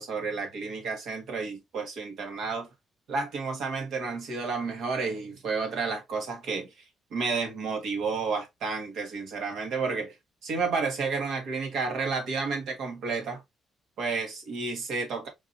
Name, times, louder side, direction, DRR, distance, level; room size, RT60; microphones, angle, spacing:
voice 1, 0.0-2.7 3.1-6.7 7.1-10.1 10.4-13.4 14.0-15.3, right 4 dB, 75° right, 1.4 m, -31 dB
4.6 x 2.8 x 2.5 m
cardioid pair, 90°, 0 cm